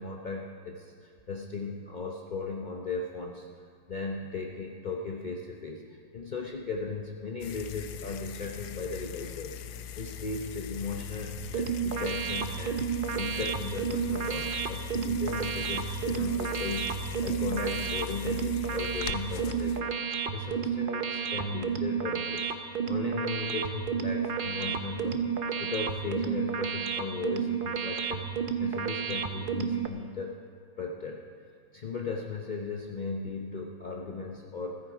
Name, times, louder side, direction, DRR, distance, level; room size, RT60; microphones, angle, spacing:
voice 1, 0.0-3.5 3.9-25.2 25.6-30.4 30.8-31.2 31.7-34.8, left 4 dB, 40° left, 0 dB, 0.6 m, -37 dB
sound 1, 7.4-19.8, left 9 dB, 70° left, 1.1 m, -40 dB
sound 2, 11.4-29.9, right 7 dB, 70° right, 0.5 m, -31 dB
15.5 x 14.0 x 5.0 m, 2.1 s
omnidirectional pair, 2.0 m